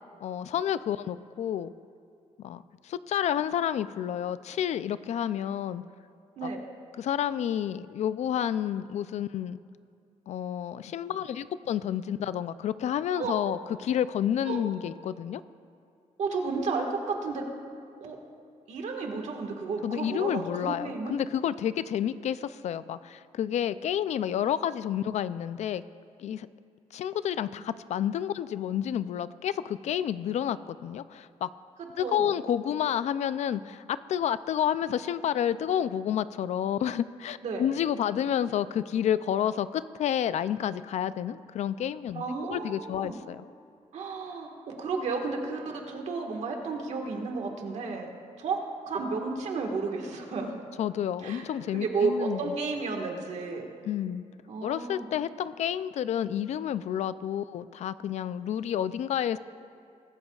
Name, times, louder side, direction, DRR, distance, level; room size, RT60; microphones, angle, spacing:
voice 1, 0.2-1.7 2.4-5.8 6.4-6.5 7.0-9.6 10.3-15.4 19.8-25.8 26.2-26.5 26.9-31.5 32.0-43.4 50.8-52.5 53.8-54.2 54.6-59.4, left 10 dB, 65° left, 15 dB, 0.4 m, -30 dB
voice 2, 16.2-17.4 18.0-18.2 18.7-21.1 31.8-32.3 37.4-37.6 42.1-43.2 43.9-48.1 48.4-48.6 48.9-50.5 51.2-51.5 51.7-53.7 54.5-55.1, right 4 dB, 65° right, 2 dB, 1.6 m, -32 dB
23.5 x 13.5 x 2.4 m, 2.4 s
wide cardioid pair, 155°, 13 cm